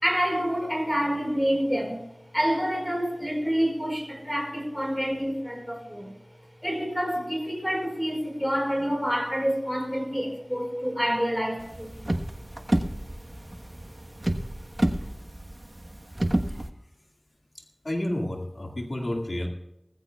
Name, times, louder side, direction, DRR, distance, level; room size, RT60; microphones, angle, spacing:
voice 1, 0.0-2.0 2.3-6.1 6.6-12.2, equal, 5° left, 3 dB, 5.0 m, -27 dB
sound 1, 11.6-16.7, right 1 dB, 35° right, 1.2 m, -29 dB
voice 2, 17.8-19.5, left 1 dB, 60° left, 1 dB, 2.0 m, -30 dB
20.0 x 15.0 x 2.3 m, 0.88 s
wide cardioid pair, 45°, 0 cm